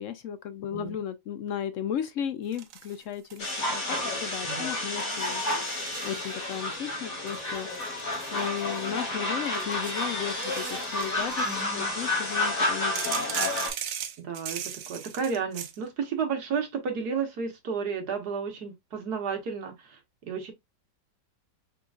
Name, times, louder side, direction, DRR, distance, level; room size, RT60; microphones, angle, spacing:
voice 1, 0.0-8.0 8.3-11.5 11.7-13.6, left 9 dB, 75° left, 0.7 m, -35 dB
sound 1, 2.5-3.6 3.9-4.4 5.0-6.6 7.3-9.0 9.5-11.6 13.0-15.8, right 9 dB, 80° right, 1.5 m, -39 dB
sound 2, 3.4-13.7, left 2 dB, 50° left, 2.5 m, -30 dB
voice 2, 11.4-11.9 14.2-20.0 20.3-20.5, right 6 dB, 65° right, 1.7 m, -32 dB
5.7 x 3.8 x 2.4 m
omnidirectional pair, 1.9 m